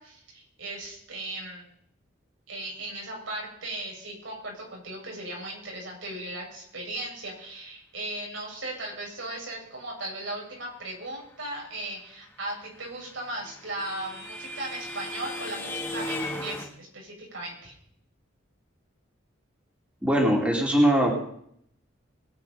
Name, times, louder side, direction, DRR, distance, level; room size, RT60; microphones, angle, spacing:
voice 1, 0.0-1.7 2.5-17.7, right 1 dB, 80° right, -1 dB, 6.4 m, -37 dB
sound 1, 12.8-16.6, left 1 dB, 10° left, 1.9 m, -36 dB
voice 2, 20.0-21.1, equal, 5° right, -2 dB, 2.8 m, -21 dB
22.0 x 9.2 x 5.4 m, 0.69 s
head